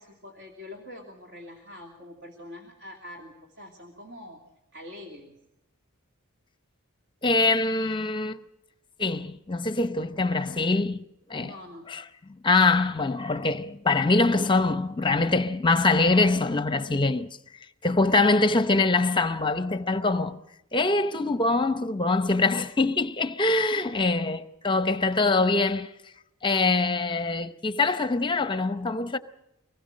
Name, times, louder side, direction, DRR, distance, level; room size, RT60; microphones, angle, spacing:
voice 1, 0.0-4.4 4.7-5.4 11.4-11.9 23.7-23.8, left 1 dB, 60° right, 2.7 m, -44 dB
voice 2, 7.2-8.4 9.0-11.0 11.3-11.5 11.9-12.0 12.4-17.3 17.8-20.4 20.7-25.9 26.4-29.2, left 3 dB, 20° left, 0.7 m, -24 dB
25.0 x 19.5 x 6.4 m
head